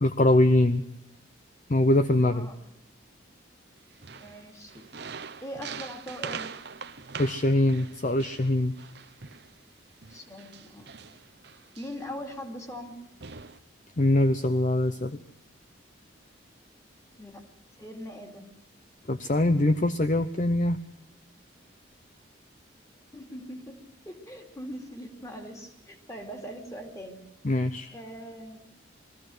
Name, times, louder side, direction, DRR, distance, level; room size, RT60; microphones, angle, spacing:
voice 1, 0.0-0.8 1.7-2.5 7.2-8.7 14.0-15.2 19.1-20.8 27.4-27.9, left 1 dB, 40° left, 10 dB, 0.7 m, -23 dB
voice 2, 2.2-2.6 4.2-6.5 10.1-10.9 11.8-13.0 17.2-17.4 17.8-18.5 23.1-23.8 24.0-27.2 27.9-28.6, equal, 15° left, 3 dB, 2.7 m, -41 dB
sound 1, 3.9-9.5 10.0-12.2 12.8-12.9 13.2-13.6, right 6 dB, 55° right, 1.0 m, -42 dB
23.0 x 15.0 x 7.9 m, 0.83 s
head